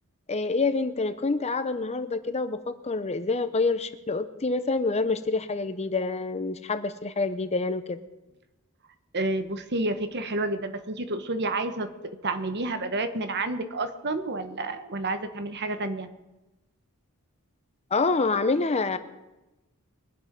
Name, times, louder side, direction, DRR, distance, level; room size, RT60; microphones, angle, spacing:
voice 1, 0.3-8.0 17.9-19.0, left 3 dB, 30° left, 11 dB, 0.7 m, -27 dB
voice 2, 9.1-11.9 12.2-16.1, right 2 dB, 50° right, 8 dB, 1.3 m, -29 dB
22.5 x 7.9 x 5.2 m, 1.0 s
head